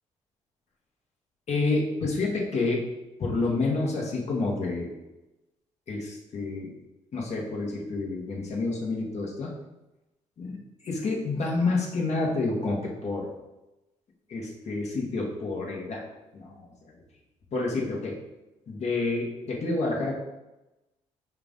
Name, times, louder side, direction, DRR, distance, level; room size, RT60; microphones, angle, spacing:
voice 1, 1.5-2.8 3.2-4.9 5.9-6.7 7.1-9.5 10.4-10.6 10.8-13.3 14.3-16.1 16.3-16.7 17.5-18.1 18.7-20.1, left 3 dB, 55° left, -2 dB, 1.3 m, -28 dB
5.7 x 2.6 x 3.6 m, 1.0 s
supercardioid pair, 60°, 14 cm